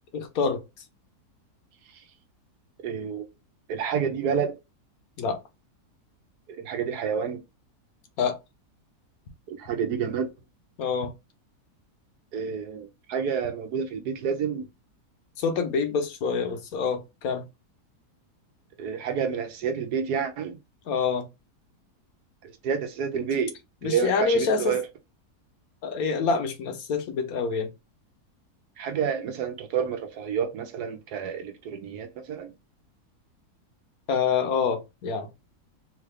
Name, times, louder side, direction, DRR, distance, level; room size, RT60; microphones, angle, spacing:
voice 1, 0.1-0.6 5.2-5.4 8.2-8.4 10.8-11.1 15.4-17.4 20.9-21.3 23.8-24.8 25.8-27.7 34.1-35.3, left 5 dB, 65° left, 1.2 m, -26 dB
voice 2, 2.8-3.3 3.7-4.5 6.5-7.4 9.5-10.3 12.3-14.6 18.8-20.6 22.4-23.5 23.8-24.8 28.8-32.5, right 7 dB, 80° right, 1.2 m, -29 dB
3.8 x 2.4 x 3.2 m
omnidirectional pair, 1.7 m